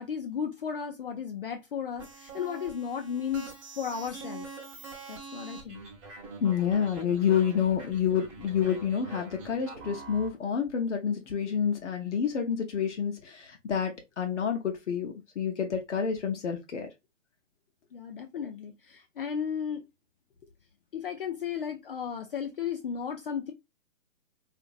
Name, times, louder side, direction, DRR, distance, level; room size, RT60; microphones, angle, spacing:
voice 1, 0.0-3.5 3.8-4.5 5.1-5.8 17.9-19.8 20.9-23.5, left 7 dB, 45° left, 0.4 m, -34 dB
sound 1, 2.0-10.3, right 4 dB, 25° right, 0.8 m, -45 dB
voice 2, 6.4-16.9, left 7 dB, 65° left, 0.8 m, -28 dB
2.8 x 2.6 x 2.4 m
hypercardioid pair, 150°, 38 cm